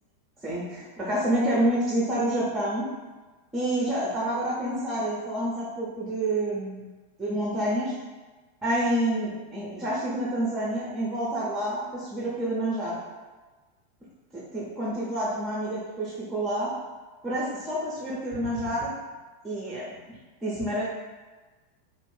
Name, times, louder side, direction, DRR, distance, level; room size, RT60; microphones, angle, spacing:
voice 1, 0.4-2.9 3.5-6.9 7.2-7.9 8.6-13.0 14.3-16.7 17.2-18.9 19.4-19.8 20.4-20.8, right 1 dB, 10° right, -6 dB, 0.7 m, -28 dB
2.5 x 2.1 x 3.2 m, 1.3 s
figure-of-eight pair, 90°, 0 cm